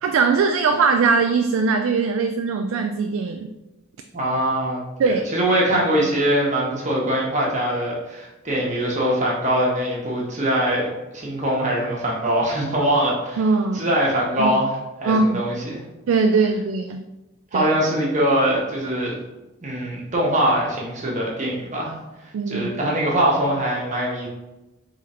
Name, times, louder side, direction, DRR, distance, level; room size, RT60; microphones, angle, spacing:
voice 1, 0.0-3.5 5.0-5.2 13.4-13.9 14.4-14.5 15.1-15.4 16.1-17.0 17.5-17.7 22.3-22.7, right 4 dB, 85° right, 5 dB, 0.3 m, -20 dB
voice 2, 4.1-13.4 13.7-14.7 15.0-15.8 17.5-19.2 19.6-22.0 22.5-24.3, right 1 dB, 35° right, -3 dB, 1.2 m, -22 dB
3.8 x 3.2 x 4.3 m, 1.0 s
head